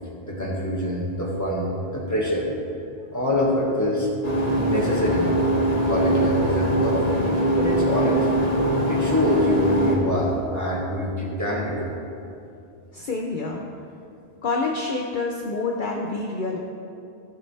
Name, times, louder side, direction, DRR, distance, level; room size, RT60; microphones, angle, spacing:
voice 1, 0.2-2.5 3.1-4.1 4.6-5.4 5.8-7.2 7.6-8.3 8.9-11.9, equal, 15° left, -3 dB, 1.7 m, -25 dB
sound 1, 4.2-9.9, right 1 dB, 40° left, 1.5 m, -22 dB
voice 2, 12.9-13.6 14.4-16.6, left 3 dB, 55° left, 0 dB, 0.9 m, -27 dB
16.0 x 7.5 x 3.3 m, 2.6 s
omnidirectional pair, 1.1 m